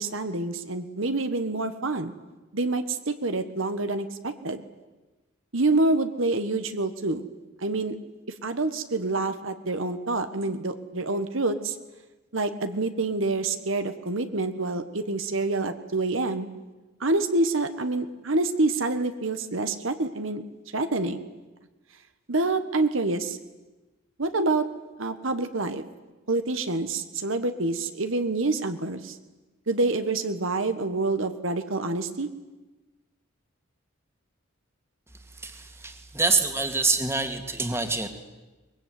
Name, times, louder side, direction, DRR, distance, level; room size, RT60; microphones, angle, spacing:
voice 1, 0.0-2.1 2.5-4.6 5.5-7.3 7.6-7.9 8.4-11.8 12.3-16.5 17.0-20.4 20.7-21.2 22.3-23.4 24.2-24.7 25.0-25.8 26.3-29.2 29.7-32.3, right 2 dB, 70° right, 9 dB, 1.5 m, -27 dB
voice 2, 35.4-38.1, right 3 dB, 15° right, 6 dB, 2.2 m, -26 dB
23.5 x 21.5 x 9.5 m, 1.1 s
head